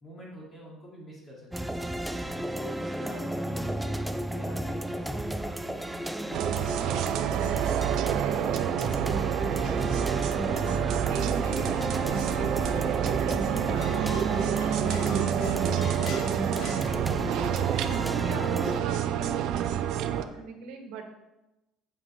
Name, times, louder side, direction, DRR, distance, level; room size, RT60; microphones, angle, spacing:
voice 1, 0.0-1.9 2.5-9.3 17.6-17.8, equal, 25° left, -5 dB, 3.1 m, -47 dB
sound 1, 1.5-18.8, right 1 dB, 5° right, 0.4 m, -33 dB
sound 2, 6.3-20.2, right 10 dB, 60° right, 0.5 m, -28 dB
voice 2, 9.6-10.0 10.7-21.0, right 5 dB, 80° right, 4 dB, 1.6 m, -41 dB
Squeak, 13.4-17.5, left 4 dB, 80° left, 2.0 m, -42 dB
9.0 x 7.1 x 3.8 m, 0.97 s
cardioid pair, 135°, 0 cm